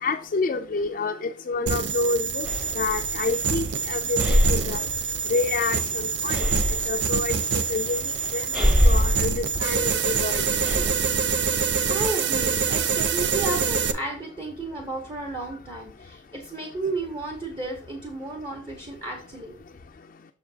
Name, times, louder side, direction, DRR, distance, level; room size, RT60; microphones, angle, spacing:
voice 1, 0.0-2.5 2.8-4.8 5.3-6.4 6.9-8.0 8.3-10.4, left 4 dB, 45° left, 4 dB, 0.4 m, -28 dB
sound 1, 1.7-13.9, right 6 dB, 75° right, 0.6 m, -26 dB
Breathing, 2.4-10.9, equal, 5° right, 0.8 m, -26 dB
voice 2, 10.7-11.1 11.9-19.6, right 2 dB, 30° right, 1 dB, 0.9 m, -33 dB
7.0 x 6.2 x 2.8 m, 0.39 s
head